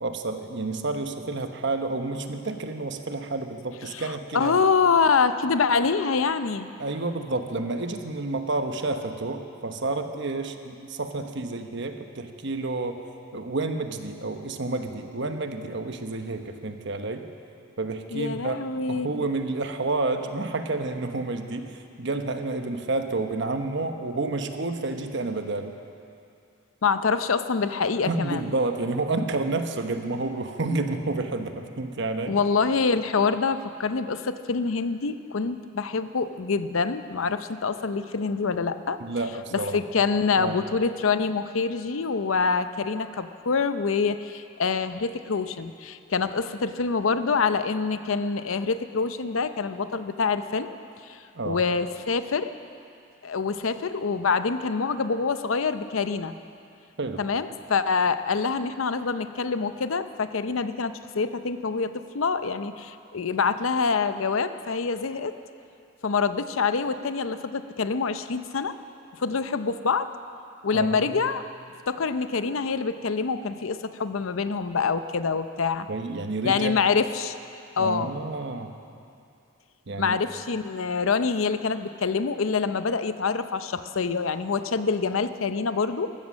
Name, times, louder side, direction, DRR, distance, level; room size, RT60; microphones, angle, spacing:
voice 1, 0.0-4.7 6.8-13.0 13.3-17.3 17.8-18.6 18.9-25.7 28.1-32.4 39.0-39.8 40.4-40.7 51.3-51.6 57.0-57.2 70.7-71.3 75.9-76.8 77.8-78.7 79.9-80.2, right 3 dB, 60° right, 6 dB, 1.0 m, -30 dB
voice 2, 3.9-6.7 18.1-19.2 26.8-28.5 32.3-39.0 39.5-50.8 51.0-51.2 51.5-52.5 53.2-56.3 57.2-65.3 66.0-68.8 69.2-70.1 70.6-71.4 71.9-75.9 76.4-77.4 77.8-78.1 80.0-86.1, left 5 dB, 80° left, 11 dB, 0.6 m, -26 dB
15.0 x 14.0 x 6.3 m, 2.5 s
head